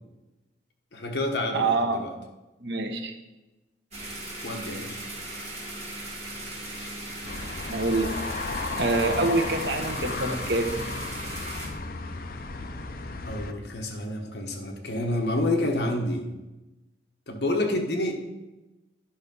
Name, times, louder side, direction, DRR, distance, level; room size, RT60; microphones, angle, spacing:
voice 1, 0.9-2.1 4.4-5.0 6.7-6.9 13.3-16.3 17.3-18.1, left 1 dB, 65° left, 2 dB, 1.3 m, -28 dB
voice 2, 1.5-2.0 2.6-3.1 7.7-8.1 8.8-10.7, right 3 dB, 70° right, 5 dB, 1.1 m, -26 dB
sound 1, 3.9-11.7, right 1 dB, 35° right, 2.5 m, -38 dB
sound 2, 7.2-13.5, left 3 dB, 50° left, 0.6 m, -34 dB
10.5 x 5.7 x 5.4 m, 1.0 s
head